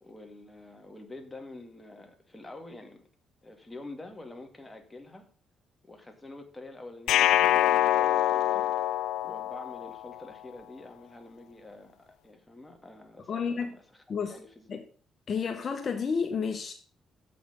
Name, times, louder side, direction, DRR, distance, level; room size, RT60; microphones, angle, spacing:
voice 1, 0.0-3.0 3.4-5.3 5.8-8.7 9.2-14.8, left 2 dB, 15° left, 2.2 m, -47 dB
sound 1, 7.1-10.2, left 13 dB, 90° left, 0.3 m, -25 dB
voice 2, 13.3-13.7 14.1-14.3 14.7-14.8 15.3-16.7, left 6 dB, 50° left, 1.2 m, -30 dB
8.0 x 6.0 x 6.9 m
cardioid pair, 90°, 0 cm